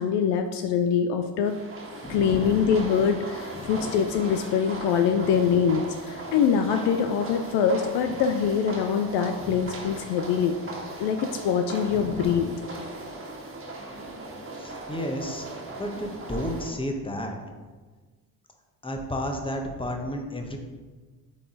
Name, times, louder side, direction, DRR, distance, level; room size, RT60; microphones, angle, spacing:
voice 1, 0.0-1.5 2.1-10.5 11.0-12.5, left 7 dB, 60° left, 6 dB, 0.6 m, -24 dB
sound 1, 1.4-16.7, right 2 dB, 25° right, 1.7 m, -38 dB
voice 2, 2.0-2.7 3.5-4.0 5.1-5.4 9.4-9.7 11.9-12.3 14.6-15.5 15.8-17.4 18.8-20.6, equal, 10° left, 3 dB, 1.2 m, -33 dB
7.3 x 4.0 x 3.9 m, 1.4 s
hypercardioid pair, 50°, 48 cm